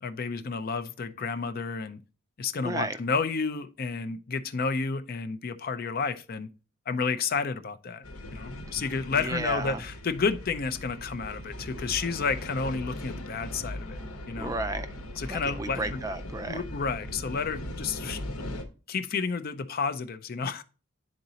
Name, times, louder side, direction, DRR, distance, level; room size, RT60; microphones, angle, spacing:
voice 1, 0.0-2.0 2.4-6.5 6.9-8.0 8.3-14.0 14.3-14.5 15.2-16.0 16.4-18.4 18.9-20.6, left 5 dB, 45° left, 0.4 m, -31 dB
voice 2, 2.6-3.0 9.2-9.8 14.4-14.9 15.3-16.6, right 2 dB, 15° right, 0.4 m, -33 dB
sound 1, 8.0-18.6, left 1 dB, 90° left, 1.1 m, -39 dB
10.5 x 3.9 x 2.8 m
head